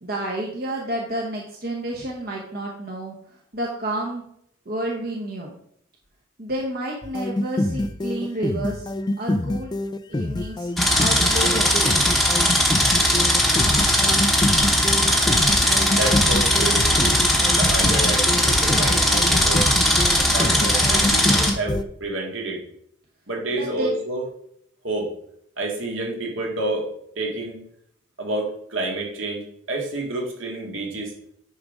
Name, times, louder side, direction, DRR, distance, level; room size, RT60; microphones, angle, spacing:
voice 1, 0.0-3.1 3.5-4.2 4.7-5.5 6.4-8.9 9.2-9.7 10.1-10.7 11.0-12.1 23.5-23.9, right 1 dB, 45° right, -1 dB, 1.0 m, -30 dB
sound 1, 7.0-21.8, left 1 dB, 20° left, 0.3 m, -26 dB
sound 2, 10.8-21.5, left 1 dB, ahead, 0.9 m, -19 dB
voice 2, 15.9-17.2 17.5-19.7 20.3-22.6 23.3-24.2 24.8-25.1 25.6-26.9 27.2-27.6 28.2-31.1, right 2 dB, 70° right, 0 dB, 2.0 m, -29 dB
9.6 x 3.6 x 5.0 m, 0.69 s
head